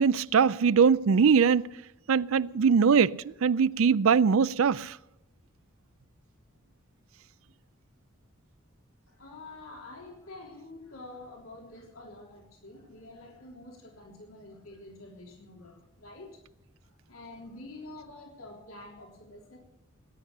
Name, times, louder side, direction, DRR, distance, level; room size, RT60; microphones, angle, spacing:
voice 1, 0.0-1.6 2.1-5.0, right 6 dB, 80° right, 0.5 m, -22 dB
voice 2, 9.1-16.3 16.9-19.6, left 2 dB, 85° left, 3.5 m, -47 dB
19.0 x 10.0 x 6.6 m
head